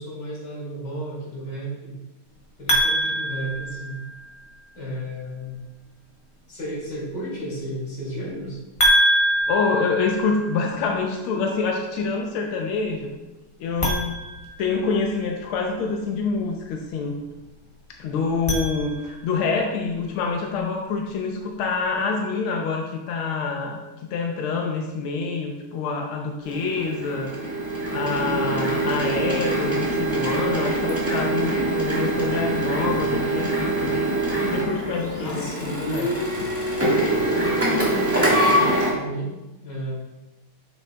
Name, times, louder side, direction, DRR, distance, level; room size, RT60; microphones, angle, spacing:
voice 1, 0.0-2.0 2.6-4.0 4.7-5.6 6.5-8.6 35.2-36.0 37.4-39.3 39.6-40.0, right 1 dB, 50° left, -6 dB, 2.9 m, -33 dB
sound 1, 2.7-4.4 8.8-10.8 13.7-15.3 18.2-19.4, equal, 25° left, 0.7 m, -24 dB
voice 2, 9.5-13.1 13.6-14.2 14.6-17.1 18.0-23.8 24.1-27.3 27.9-34.0 34.5-36.1, left 4 dB, 90° left, 2 dB, 1.5 m, -26 dB
Printer, 26.4-38.9, right 1 dB, 10° right, 1.3 m, -24 dB
8.6 x 6.5 x 2.2 m, 1.0 s
omnidirectional pair, 2.3 m